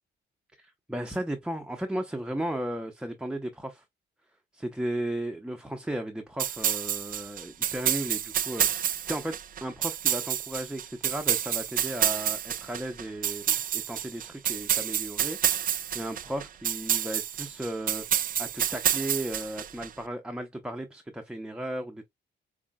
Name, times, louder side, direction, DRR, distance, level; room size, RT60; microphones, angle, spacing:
voice 1, 0.6-3.8 4.5-22.1, right 1 dB, 5° right, 0.7 m, -35 dB
sound 1, 6.4-19.9, right 10 dB, 45° right, 0.4 m, -29 dB
5.1 x 2.7 x 2.2 m
cardioid pair, 90°, 20 cm